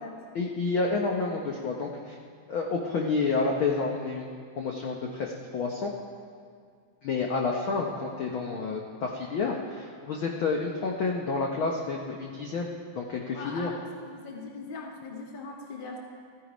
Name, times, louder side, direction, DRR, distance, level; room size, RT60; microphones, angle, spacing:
voice 1, 0.3-2.2 2.5-4.2 4.6-5.9 7.0-12.7 12.9-13.7, left 4 dB, 65° left, 0 dB, 1.2 m, -29 dB
voice 2, 13.3-16.0, left 3 dB, 30° left, 0 dB, 0.9 m, -40 dB
14.5 x 14.0 x 5.1 m, 2.1 s
omnidirectional pair, 3.6 m